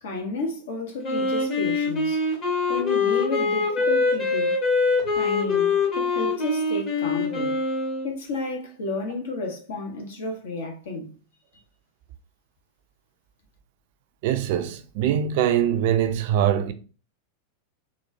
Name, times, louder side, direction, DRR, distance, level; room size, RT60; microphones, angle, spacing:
voice 1, 0.0-2.2 2.7-4.6 5.1-7.6 8.0-11.1, left 2 dB, 60° left, 1.0 m, -32 dB
Wind instrument woodwind instrument, 1.0-8.1, left 4 dB, 35° left, 1.3 m, -24 dB
voice 2, 14.2-16.7, right 10 dB, 50° right, 0.4 m, -23 dB
4.1 x 2.3 x 2.7 m
figure-of-eight pair, 90°, 0 cm